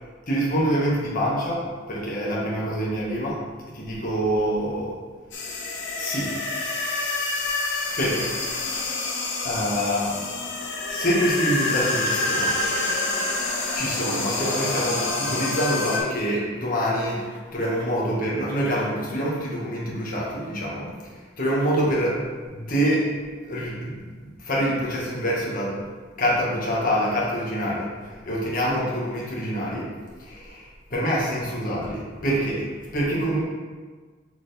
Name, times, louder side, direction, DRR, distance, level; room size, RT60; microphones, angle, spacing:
voice 1, 0.3-3.4 3.7-5.0 6.0-6.4 8.0-8.3 8.7-8.8 9.4-10.3 10.9-12.6 13.7-22.2 22.5-23.1 23.4-24.1 24.4-25.8 26.2-29.9 30.2-32.6 32.9-33.4, equal, 50° left, -5 dB, 1.8 m, -26 dB
sound 1, 5.3-16.0, left 2 dB, 80° left, 1.3 m, -27 dB
6.9 x 4.6 x 3.4 m, 1.4 s
head